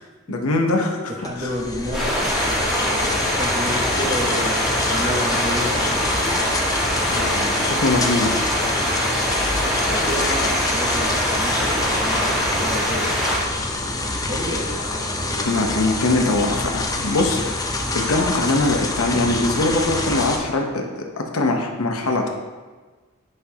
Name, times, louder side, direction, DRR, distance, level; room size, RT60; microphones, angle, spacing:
voice 1, 0.3-1.1 1.4-1.5 7.1-8.4 15.4-17.6 17.9-22.3, left 2 dB, 85° left, 2 dB, 0.8 m, -22 dB
voice 2, 1.1-6.0 9.8-13.1 14.0-16.4, equal, 30° right, -1 dB, 1.1 m, -31 dB
sound 1, 1.2-20.4, left 2 dB, 15° left, 0.6 m, -26 dB
sound 2, 1.9-13.4, equal, 5° right, 1.6 m, -23 dB
8.2 x 5.4 x 2.9 m, 1.4 s
head